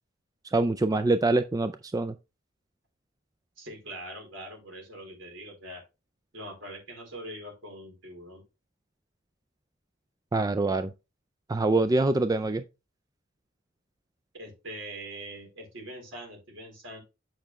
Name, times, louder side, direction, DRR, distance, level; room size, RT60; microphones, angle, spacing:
voice 1, 0.5-2.1 10.3-10.9 11.5-12.6, right 2 dB, 20° right, 0.4 m, -25 dB
voice 2, 3.6-5.8 6.3-8.4 14.3-17.0, right 1 dB, 70° right, 4.3 m, -42 dB
8.9 x 5.8 x 3.1 m
head